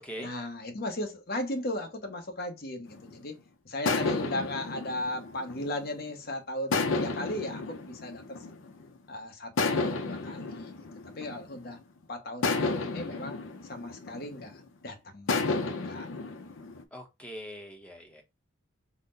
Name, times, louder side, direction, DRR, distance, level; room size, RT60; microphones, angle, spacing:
voice 1, 0.2-3.4 3.6-8.2 9.1-10.8 11.0-11.8 12.1-15.6 15.8-16.1, left 1 dB, 50° left, 0.9 m, -36 dB
sound 1, 2.9-3.3 3.9-6.1 6.7-9.0 9.6-11.7 12.4-14.7 15.3-16.8, left 3 dB, 70° left, 0.6 m, -32 dB
voice 2, 16.9-18.2, equal, 5° left, 0.7 m, -42 dB
4.0 x 2.0 x 3.8 m
head